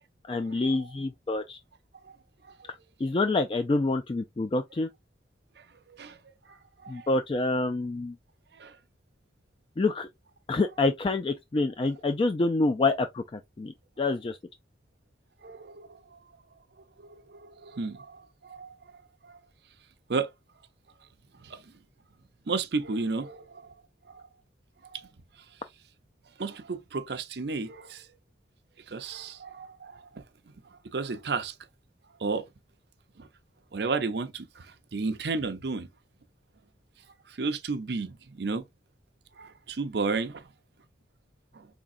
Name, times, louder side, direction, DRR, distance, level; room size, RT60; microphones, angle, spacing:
voice 1, 0.3-1.6 2.7-4.9 6.9-8.2 9.8-10.1 10.5-14.4, left 3 dB, 30° left, 0.3 m, -27 dB
voice 2, 5.6-6.2 6.5-6.6 6.8-7.1 8.6-8.8 15.4-16.2 17.0-18.7 19.2-19.3 20.1-20.3 21.4-21.6 22.5-23.7 24.1-24.2 24.9-25.1 26.4-28.1 28.9-30.2 30.9-31.6 32.2-32.5 33.2-33.3 33.7-35.9 37.3-38.6 39.4-40.5 41.5-41.7, right 4 dB, 60° right, 0.6 m, -33 dB
4.9 x 3.6 x 2.5 m
head